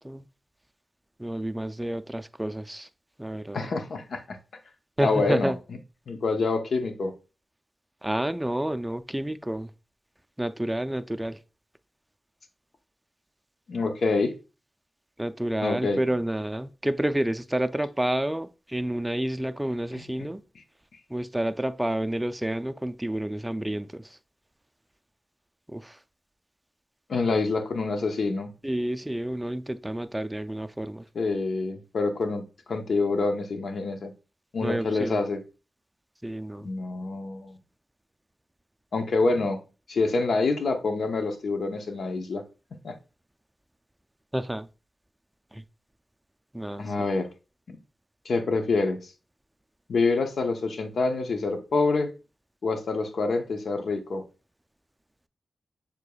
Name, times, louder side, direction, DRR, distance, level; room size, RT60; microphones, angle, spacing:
voice 1, 1.2-2.9 3.2-3.7 5.0-5.6 8.0-9.7 10.4-11.4 15.2-20.4 21.1-24.0 25.7-26.0 27.3-27.4 28.6-31.1 34.6-35.2 36.2-36.7 44.3-44.7 45.5-45.6 46.5-46.8, right 1 dB, 10° right, 0.4 m, -29 dB
voice 2, 3.5-4.4 5.0-5.8 6.1-7.1 13.7-14.4 15.6-16.0 19.9-20.3 27.1-28.5 31.1-34.1 34.5-35.4 36.6-37.6 38.9-39.6 39.9-42.4 42.8-43.0 46.8-47.3 47.7-47.8 48.2-49.0 49.9-52.1 52.6-54.2, left 3 dB, 75° left, 0.7 m, -26 dB
6.6 x 3.5 x 2.3 m
cardioid pair, 75°, 0 cm